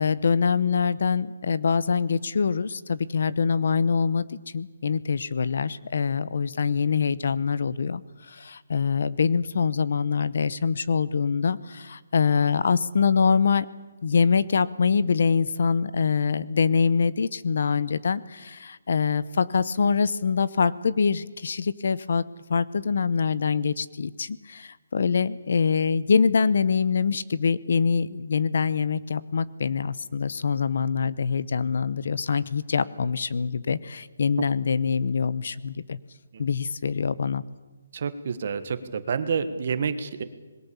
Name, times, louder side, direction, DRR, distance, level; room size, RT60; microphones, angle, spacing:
voice 1, 0.0-4.2 4.5-13.7 14.0-22.2 22.5-36.0 36.4-37.4, left 5 dB, 50° left, 17 dB, 0.8 m, -24 dB
voice 2, 37.9-40.2, right 6 dB, 40° right, 11 dB, 1.7 m, -28 dB
26.5 x 21.0 x 7.1 m, 1.2 s
hypercardioid pair, 175°, 0 cm